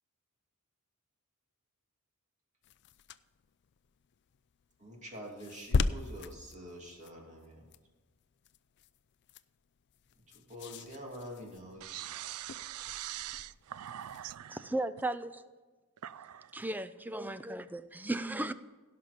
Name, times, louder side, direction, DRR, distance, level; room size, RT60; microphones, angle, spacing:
sound 1, 2.6-14.4, left 4 dB, 50° left, 0.4 m, -40 dB
voice 1, 4.8-7.6 10.5-12.1, equal, 35° right, 2.7 m, -46 dB
voice 2, 11.8-14.5 16.0-16.3, right 13 dB, 75° right, 0.4 m, -42 dB
voice 3, 14.5-15.4 16.5-18.5, right 2 dB, 10° right, 0.4 m, -35 dB
17.0 x 6.0 x 5.1 m
head